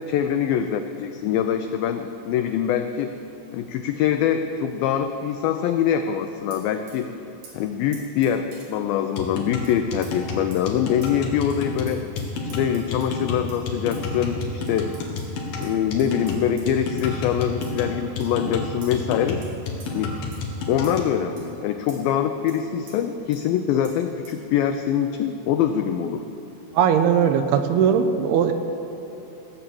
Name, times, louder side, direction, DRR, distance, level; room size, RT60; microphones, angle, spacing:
voice 1, 0.0-3.1 3.5-7.1 7.5-12.0 12.4-14.9 15.6-19.4 19.9-20.3 20.7-26.2, left 9 dB, 90° left, 7 dB, 2.0 m, -24 dB
sound 1, 6.5-7.0 7.4-7.5 7.9-8.7 9.6-9.7 10.0-10.1 10.5-10.6 11.0-11.1 11.5-11.6 11.9-13.2 13.5-13.6 13.9-14.0 14.7-15.3 15.6-15.7 16.0-16.7 17.0-17.1 17.6-17.8 18.2-18.3 18.8-19.0 19.4-19.5 19.8-19.9 20.3-20.4 20.8-21.0 21.4-21.5 21.9-22.0 22.5-22.6 22.9-23.0 23.3-23.4 23.8-23.9 24.2-24.4, right 4 dB, 65° right, 4.3 m, -47 dB
sound 2, 9.2-21.1, left 3 dB, 65° left, 3.1 m, -31 dB
voice 2, 26.7-28.5, right 8 dB, 80° right, 7 dB, 2.5 m, -19 dB
15.5 x 7.5 x 8.5 m, 2.9 s
omnidirectional pair, 4.8 m